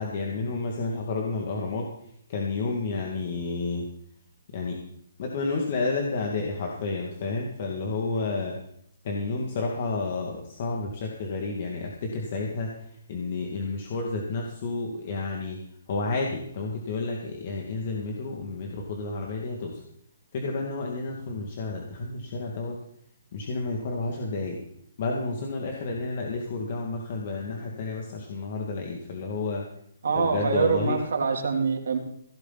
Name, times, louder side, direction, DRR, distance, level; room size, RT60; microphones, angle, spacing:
voice 1, 0.0-1.9 2.3-3.9 4.5-4.8 5.2-8.6 9.0-12.8 13.1-15.6 15.9-19.8 20.3-22.8 23.3-24.6 25.0-29.6 30.1-31.0, left 3 dB, 45° left, 0 dB, 2.4 m, -30 dB
voice 2, 30.0-32.0, right 5 dB, 75° right, 2 dB, 3.3 m, -25 dB
17.0 x 12.0 x 4.2 m, 0.70 s
hypercardioid pair, 160°, 0 cm